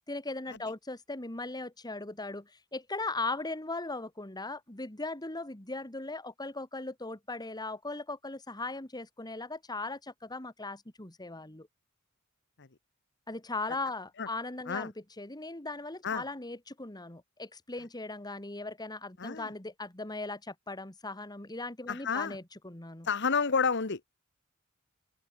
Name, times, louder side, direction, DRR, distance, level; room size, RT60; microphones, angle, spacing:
voice 1, 0.1-11.7 13.3-23.1, left 2 dB, 20° left, 2.1 m, -38 dB
voice 2, 19.2-19.5 21.9-22.4 23.0-24.2, left 5 dB, 60° left, 1.3 m, -30 dB
open air
head